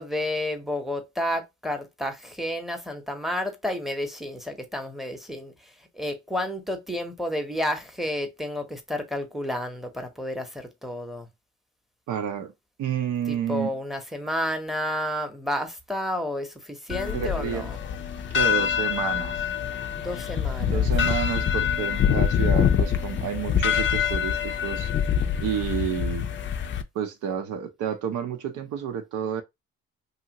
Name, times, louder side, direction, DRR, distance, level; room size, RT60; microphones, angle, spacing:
voice 1, 0.0-11.3 13.3-17.8 20.0-20.9, left 1 dB, ahead, 0.7 m, -31 dB
voice 2, 12.1-12.5 12.8-13.7 17.1-17.7 18.3-19.5 20.6-24.9 25.4-26.3 26.9-29.4, right 8 dB, 80° right, 0.7 m, -30 dB
sound 1, 16.9-26.8, left 8 dB, 40° left, 0.4 m, -25 dB
2.8 x 2.4 x 2.8 m
cardioid pair, 90°, 30 cm